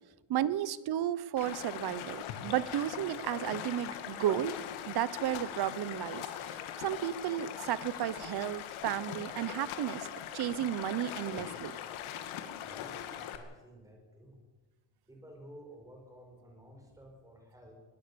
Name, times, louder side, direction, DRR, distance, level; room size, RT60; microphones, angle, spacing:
voice 1, 0.3-4.5 4.9-10.1 10.3-11.7, right 12 dB, 50° right, 18 dB, 1.0 m, -33 dB
Stream, 1.4-13.4, left 10 dB, 75° left, 2.4 m, -41 dB
voice 2, 12.6-14.4 15.1-17.7, equal, 5° right, 1 dB, 5.2 m, -53 dB
22.0 x 18.0 x 7.0 m, 1.2 s
cardioid pair, 145°, 48 cm